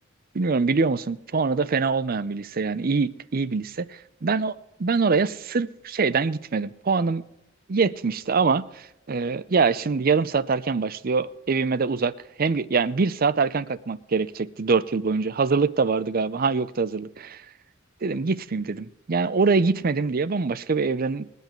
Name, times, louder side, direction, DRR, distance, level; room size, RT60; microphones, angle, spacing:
voice 1, 0.3-3.9 4.2-7.2 7.7-8.6 9.1-12.1 12.4-17.4 18.0-21.3, right 4 dB, 45° right, 0.5 m, -24 dB
21.5 x 8.2 x 4.5 m
head